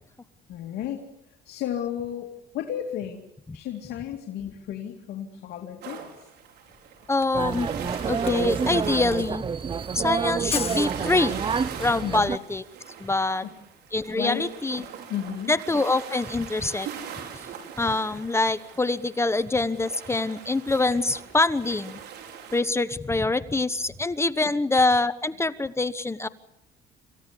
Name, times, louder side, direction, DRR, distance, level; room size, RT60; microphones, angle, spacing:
voice 1, 0.5-1.0 1.4-2.3 2.5-3.2 3.5-6.0 12.0-12.3 13.4-13.5 14.2-14.4 14.7-14.8 15.1-15.5 24.4-24.5, left 10 dB, 70° left, 3 dB, 2.7 m, -33 dB
sound 1, 5.8-22.6, right 8 dB, 75° right, 4.9 m, -41 dB
Camera, 6.7-6.8 7.0-11.6, left 7 dB, 35° left, 1.2 m, -36 dB
voice 2, 7.1-9.4 9.9-11.4 11.8-12.6 13.0-13.5 13.9-14.8 15.5-16.9 17.8-22.0 22.5-26.3, left 3 dB, 15° left, 14 dB, 1.0 m, -25 dB
sound 2, 7.3-12.4, right 6 dB, 30° right, 0.8 m, -28 dB
27.5 x 16.0 x 9.8 m, 0.83 s
cardioid pair, 110°, 17 cm